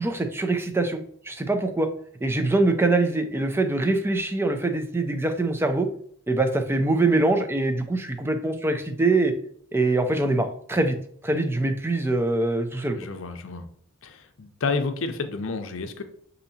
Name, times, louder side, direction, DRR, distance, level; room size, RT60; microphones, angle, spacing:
voice 1, 0.0-1.9 2.2-5.9 6.3-9.3 9.7-11.0 11.2-13.0, right 2 dB, 10° right, 7 dB, 0.4 m, -23 dB
voice 2, 12.9-13.7 14.0-16.0, left 4 dB, 65° left, 7 dB, 0.6 m, -30 dB
6.7 x 2.7 x 2.7 m, 0.62 s
head